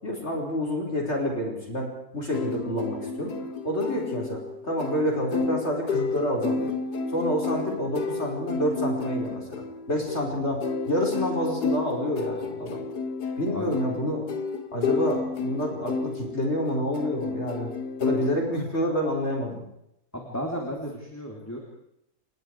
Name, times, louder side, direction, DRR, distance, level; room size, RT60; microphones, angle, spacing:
voice 1, 0.0-3.3 3.6-6.7 7.1-9.6 9.9-12.8 13.4-14.3 14.7-17.7 18.0-19.6, equal, 45° left, 0 dB, 5.5 m, -28 dB
sound 1, 2.3-18.3, left 4 dB, 90° left, 2.0 m, -31 dB
voice 2, 20.1-21.6, equal, 10° left, -1 dB, 3.4 m, -34 dB
29.0 x 20.5 x 4.9 m, 0.80 s
omnidirectional pair, 1.6 m